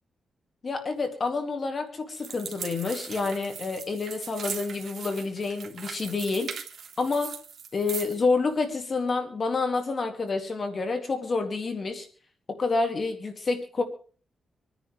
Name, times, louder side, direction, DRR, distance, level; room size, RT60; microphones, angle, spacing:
voice 1, 0.6-6.5 7.0-7.3 7.7-12.1 12.5-13.8, left 4 dB, 45° left, 5 dB, 2.3 m, -28 dB
sound 1, 2.2-8.2, right 7 dB, 65° right, 2.0 m, -39 dB
26.5 x 10.0 x 3.4 m, 0.42 s
cardioid pair, 95°, 0 cm